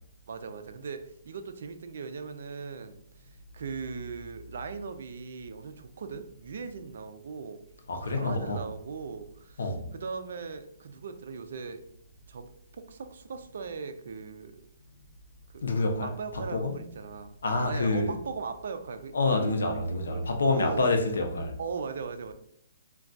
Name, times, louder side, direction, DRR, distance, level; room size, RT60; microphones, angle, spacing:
voice 1, 0.3-7.6 8.1-11.8 12.3-14.7 15.5-15.7 16.0-17.3 17.7-19.5 19.8-20.8 21.6-22.3, right 5 dB, 55° right, 0.4 m, -39 dB
voice 2, 7.9-8.6 9.6-9.9 15.6-16.8 17.4-18.1 19.1-21.5, left 2 dB, 85° left, 0.6 m, -27 dB
2.2 x 2.2 x 3.8 m
hypercardioid pair, 170°, 0 cm